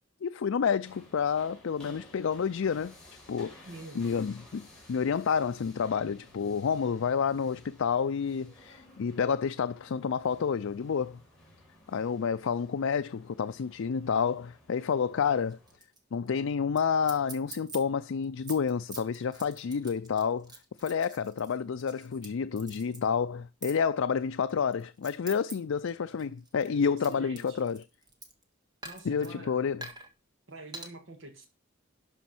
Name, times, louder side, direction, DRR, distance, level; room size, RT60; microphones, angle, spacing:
voice 1, 0.2-2.9 3.3-3.5 4.0-11.2 11.9-15.6 16.1-20.5 20.8-27.8 29.1-29.8, left 6 dB, 75° left, 0.4 m, -29 dB
sound 1, 0.8-15.8, left 1 dB, 5° left, 5.0 m, -56 dB
voice 2, 3.6-4.0 26.7-27.6 28.8-29.6 30.5-31.5, right 2 dB, 65° right, 1.9 m, -46 dB
sound 2, 15.5-16.0 16.3-16.4 16.8-16.9 17.1-17.8 18.2-22.3 22.6-23.0 23.6-23.8 24.5-25.5 25.9-28.4 28.8-29.3 29.8-30.1 30.7-30.9, right 2 dB, 20° right, 1.7 m, -45 dB
11.5 x 5.1 x 6.0 m
head